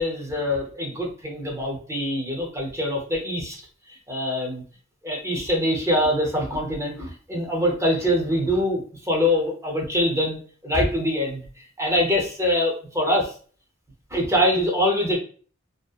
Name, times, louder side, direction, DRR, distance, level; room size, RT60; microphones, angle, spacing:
voice 1, 0.0-3.6 3.9-4.6 5.0-11.4 11.8-13.3 14.1-15.2, left 1 dB, 15° right, -2 dB, 0.7 m, -24 dB
2.7 x 2.0 x 2.4 m, 0.41 s
head